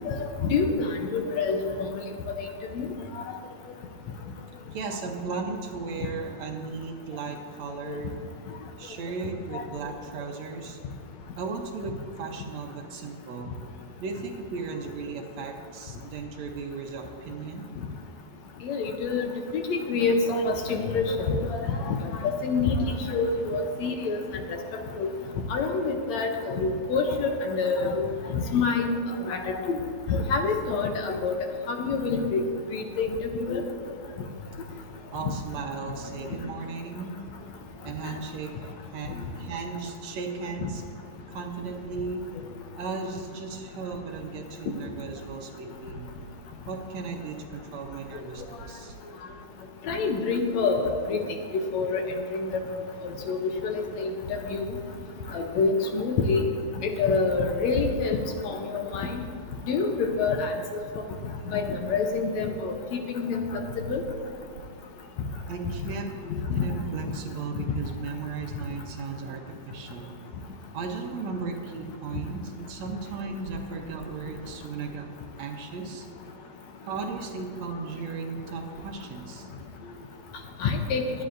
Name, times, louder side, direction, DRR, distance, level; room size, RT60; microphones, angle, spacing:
voice 1, 0.5-2.0 2.4-2.5 2.8-2.9 7.9-8.0 9.5-9.6 18.6-22.0 22.2-24.2 24.5-24.6 25.0-25.1 25.5-28.1 28.3-28.9 29.2-29.8 30.1-31.4 31.7-32.4 32.7-33.6 40.6-40.7 49.9-51.2 51.5-52.0 52.3-52.5 53.3-54.7 55.3-56.4 56.8-58.2 58.4-59.2 59.7-60.5 61.5-62.7 63.1-63.6 63.9-64.0 66.6-66.7 80.6-81.0, left 4 dB, 70° left, 4 dB, 2.0 m, -26 dB
voice 2, 4.7-8.2 8.8-10.8 11.4-13.6 14.0-17.7 33.8-33.9 35.1-37.2 37.8-40.8 41.3-42.3 42.8-46.2 46.7-49.0 65.5-66.1 66.5-70.2 70.7-76.1 76.9-79.5, right 4 dB, 70° right, 2 dB, 2.1 m, -36 dB
22.5 x 9.5 x 2.6 m, 2.5 s
omnidirectional pair, 3.5 m